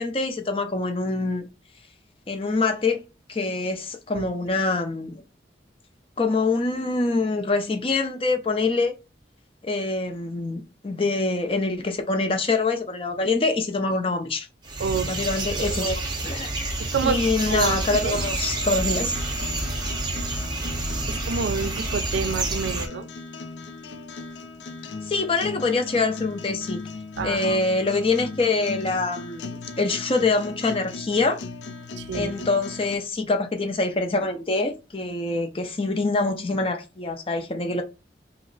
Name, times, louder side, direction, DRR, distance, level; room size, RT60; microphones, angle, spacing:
voice 1, 0.0-1.5 2.3-3.0 3.3-5.2 6.2-8.9 9.6-14.5 15.1-16.5 17.0-19.1 25.0-26.8 27.2-31.4 32.1-37.8, left 3 dB, 30° left, 0.5 m, -25 dB
sound 1, 14.6-22.9, right 2 dB, 25° right, 0.5 m, -28 dB
sound 2, 16.9-32.9, left 3 dB, 85° left, 0.4 m, -38 dB
voice 2, 17.5-18.2 21.1-23.1 27.2-27.6 32.0-32.5, right 5 dB, 85° right, 0.4 m, -28 dB
3.0 x 2.0 x 3.8 m
head